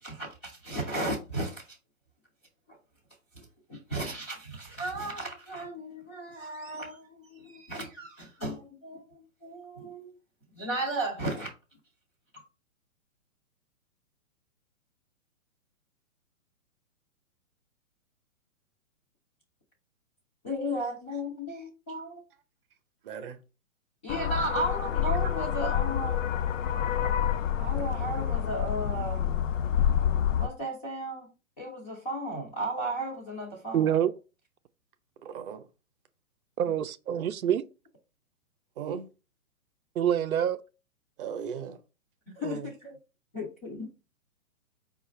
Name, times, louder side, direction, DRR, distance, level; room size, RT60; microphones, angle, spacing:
voice 1, 0.0-1.8 2.7-2.8 3.3-10.1 10.5-11.5 20.4-22.2 24.0-26.3 27.6-29.4 30.4-34.1 42.3-43.0 43.3-43.9, right 1 dB, 10° left, 0.4 m, -35 dB
voice 2, 23.0-23.4 35.2-35.7 37.1-37.3 38.8-39.0 41.2-41.8, right 7 dB, 40° right, 0.7 m, -37 dB
sound 1, 24.1-30.5, left 9 dB, 65° left, 0.5 m, -28 dB
voice 3, 33.7-34.1 36.6-37.6 40.0-40.6 42.4-42.7, right 9 dB, 80° right, 0.5 m, -26 dB
4.8 x 2.4 x 4.2 m
figure-of-eight pair, 125°, 42 cm